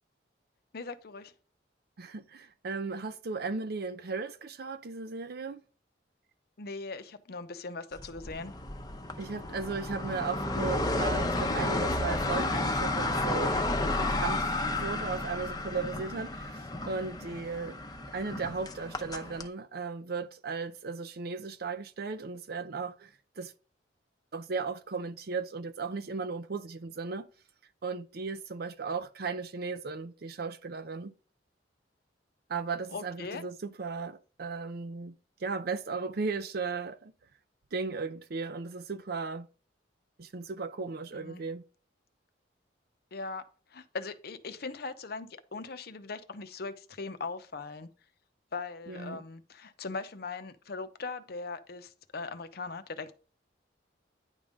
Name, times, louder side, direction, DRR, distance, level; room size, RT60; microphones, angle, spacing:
voice 1, 0.7-1.3 6.6-8.5 32.9-33.4 41.1-41.4 43.1-43.4 43.7-47.9 48.5-53.1, left 4 dB, 60° left, 0.7 m, -40 dB
voice 2, 2.0-5.6 9.2-13.6 14.0-17.8 18.1-23.5 24.3-27.3 27.8-31.1 32.5-35.1 35.4-37.1 37.7-39.5 40.2-41.6 48.9-49.2, right 4 dB, 55° right, 0.6 m, -36 dB
sound 1, 8.0-19.5, left 2 dB, 20° left, 0.8 m, -32 dB
9.9 x 3.6 x 5.2 m
head